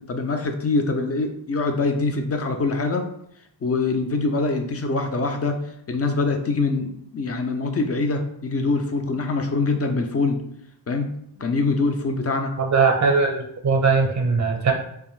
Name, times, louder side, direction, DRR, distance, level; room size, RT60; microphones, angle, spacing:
voice 1, 0.1-3.1 3.6-5.6 5.9-10.4 10.9-11.1 11.4-12.5, left 3 dB, 35° left, 5 dB, 0.4 m, -24 dB
voice 2, 12.6-14.7, right 4 dB, 40° right, 2 dB, 0.6 m, -20 dB
2.5 x 2.3 x 3.1 m, 0.73 s
cardioid pair, 65°, 44 cm